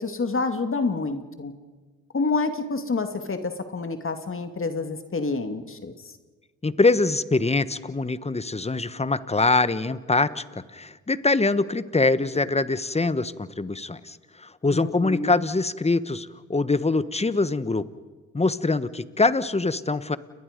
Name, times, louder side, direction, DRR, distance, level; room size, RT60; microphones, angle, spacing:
voice 1, 0.0-1.5 2.1-5.9 14.7-15.4, left 3 dB, 40° left, 7 dB, 2.4 m, -28 dB
voice 2, 6.6-17.8 18.3-20.2, left 3 dB, 20° left, 14 dB, 1.3 m, -24 dB
29.5 x 21.5 x 5.3 m, 1.3 s
supercardioid pair, 55°, 34 cm